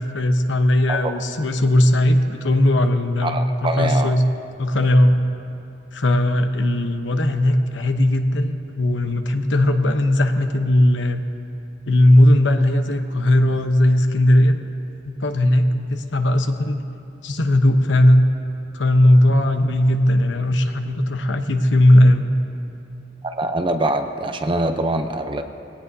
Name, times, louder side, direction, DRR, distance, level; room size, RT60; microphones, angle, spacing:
voice 1, 0.0-4.2 4.6-5.2 5.9-11.2 11.9-14.6 15.1-16.8 17.2-18.3 18.7-22.3, left 1 dB, 90° left, 7 dB, 0.9 m, -17 dB
voice 2, 3.2-4.2 23.2-25.4, right 2 dB, 30° right, 6 dB, 0.7 m, -24 dB
20.5 x 17.0 x 2.7 m, 2.8 s
head